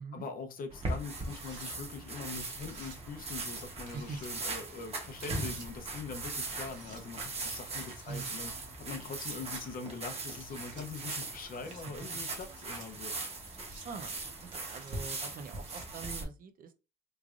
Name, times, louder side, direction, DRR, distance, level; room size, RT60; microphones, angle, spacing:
voice 1, 0.1-8.5 8.8-13.1, left 5 dB, 45° left, 0.7 m, -43 dB
sound 1, 0.7-16.2, right 3 dB, 30° right, 0.9 m, -40 dB
sound 2, 1.2-1.7 2.5-3.0 3.9-4.3 5.2-5.7 6.5-7.0 7.9-8.4 9.2-9.7 10.4-10.9 11.5-11.9 12.4-12.9 13.5-13.9 14.5-14.9 15.4-15.9, right 4 dB, 75° right, 1.3 m, -55 dB
voice 2, 8.1-8.4 11.8-11.9 13.8-16.8, right 5 dB, 45° right, 0.6 m, -44 dB
3.5 x 3.2 x 2.4 m
cardioid pair, 165°, 20 cm